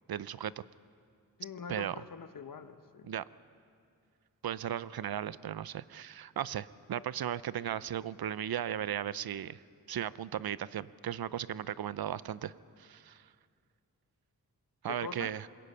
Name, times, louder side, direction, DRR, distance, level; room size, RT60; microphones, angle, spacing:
voice 1, 0.1-0.6 1.7-2.0 3.0-3.2 4.4-9.6 9.9-13.2 14.8-15.5, right 10 dB, 80° right, 17 dB, 0.6 m, -36 dB
voice 2, 1.4-3.1 14.9-15.3, left 5 dB, 65° left, 9 dB, 1.1 m, -44 dB
27.0 x 22.0 x 5.6 m, 2.3 s
wide cardioid pair, 85°, 36 cm